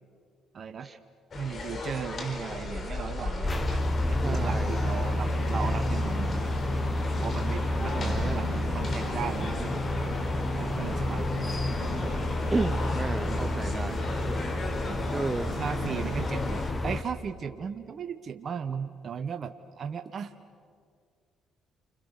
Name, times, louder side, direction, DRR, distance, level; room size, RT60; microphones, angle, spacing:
voice 1, 0.5-0.9 1.3-3.8 4.1-6.5 7.2-11.3 13.2-13.5 14.8-15.3 15.5-20.3, right 7 dB, 50° right, 7 dB, 1.1 m, -37 dB
sound 1, 1.3-16.7, left 2 dB, 50° left, 4.1 m, -37 dB
sound 2, 3.4-17.0, left 2 dB, 25° left, 1.4 m, -30 dB
voice 2, 4.2-4.8 7.9-8.4 12.5-14.0 15.1-15.5, right 3 dB, 25° right, 10 dB, 0.7 m, -32 dB
sound 3, 4.3-16.3, right 8 dB, 75° right, 2.1 m, -40 dB
29.5 x 26.5 x 6.6 m, 2.2 s
supercardioid pair, 65°, 0 cm